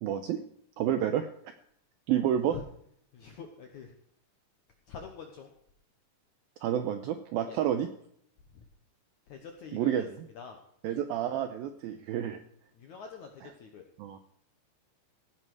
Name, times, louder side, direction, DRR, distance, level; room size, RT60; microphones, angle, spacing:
voice 1, 0.0-0.4 0.8-1.3 2.1-2.6 6.6-7.9 9.7-10.1 10.8-12.4 14.0-14.2, right 10 dB, 80° right, 8 dB, 2.1 m, -29 dB
voice 2, 3.1-4.0 4.9-5.5 7.5-7.6 8.5-8.6 9.3-10.1 10.3-10.6 12.8-13.8, left 6 dB, 70° left, 3 dB, 1.8 m, -45 dB
17.0 x 9.9 x 4.8 m, 0.67 s
omnidirectional pair, 5.1 m